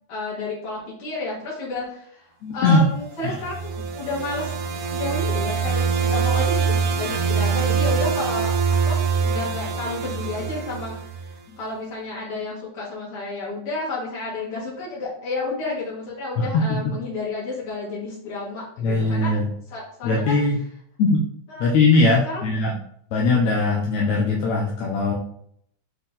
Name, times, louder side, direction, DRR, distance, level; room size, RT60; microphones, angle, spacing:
voice 1, 0.1-2.3 2.5-4.5 4.9-19.4 19.7-20.4 21.5-21.7 22.2-22.4, left 3 dB, 50° left, -7 dB, 3.2 m, -31 dB
voice 2, 2.4-2.8 3.2-3.4 16.4-16.9 18.8-19.5 20.0-20.6 21.0-21.2 21.6-22.8 23.1-25.1, left 3 dB, 75° left, -1 dB, 2.0 m, -20 dB
sound 1, 3.2-11.4, right 6 dB, 75° right, 1.9 m, -24 dB
6.1 x 4.1 x 3.7 m, 0.66 s
omnidirectional pair, 3.5 m